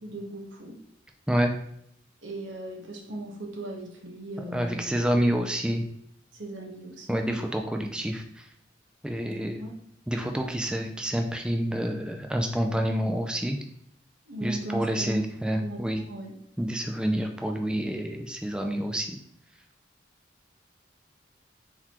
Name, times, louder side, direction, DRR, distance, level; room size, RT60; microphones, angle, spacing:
voice 1, 0.0-0.7 2.2-5.4 6.3-7.2 9.6-9.8 14.3-15.2 15.6-16.4, right 1 dB, 90° right, 1 dB, 1.0 m, -37 dB
voice 2, 4.5-5.8 7.1-8.2 9.0-9.6 10.1-13.6 14.4-16.0 16.6-19.2, equal, 5° right, 3 dB, 0.3 m, -28 dB
4.3 x 4.0 x 2.9 m, 0.73 s
head